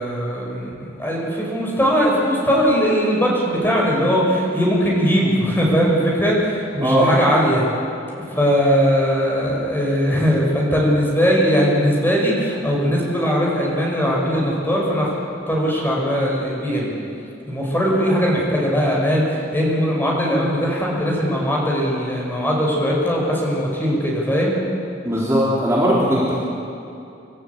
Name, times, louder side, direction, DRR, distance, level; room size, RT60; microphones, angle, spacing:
voice 1, 0.0-7.7 8.2-15.1 15.5-16.9 17.5-24.5, equal, 10° left, -3 dB, 5.7 m, -20 dB
voice 2, 25.0-26.3, equal, 15° right, -7 dB, 3.8 m, -18 dB
27.5 x 14.5 x 8.3 m, 2.7 s
head